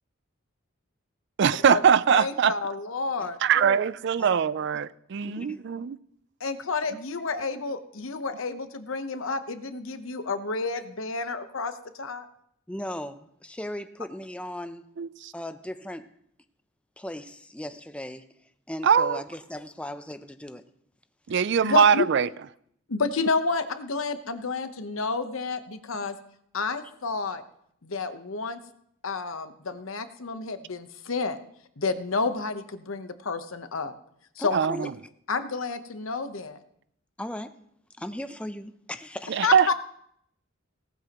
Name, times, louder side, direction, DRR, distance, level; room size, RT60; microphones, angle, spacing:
voice 1, 1.4-2.5 3.4-6.0 15.0-15.3 18.8-19.2 21.3-22.3 34.5-34.9 39.3-39.7, right 7 dB, 55° right, 0.4 m, -22 dB
voice 2, 2.1-3.4 6.4-12.3 21.6-22.1 22.9-26.2 26.5-27.4 27.8-28.6 29.0-31.4 31.8-33.9 34.3-34.8 35.3-36.6 39.4-39.7, left 4 dB, 75° left, 1.0 m, -30 dB
voice 3, 5.2-5.6 12.7-14.8 15.3-16.1 17.0-18.3 18.7-20.7 34.4-34.9 37.2-37.6 38.0-39.5, left 1 dB, 5° left, 0.5 m, -37 dB
18.0 x 13.0 x 3.0 m
head